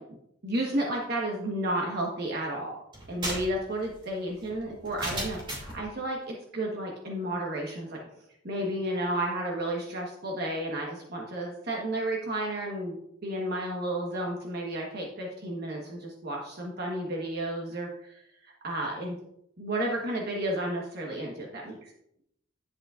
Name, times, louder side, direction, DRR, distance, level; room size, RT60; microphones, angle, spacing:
voice 1, 0.4-2.7 3.1-8.0 8.4-19.2 19.6-21.9, right 1 dB, 50° right, -2 dB, 1.3 m, -32 dB
sound 1, 2.9-5.8, right 1 dB, 25° right, 2.6 m, -36 dB
11.0 x 7.5 x 2.5 m, 0.77 s
head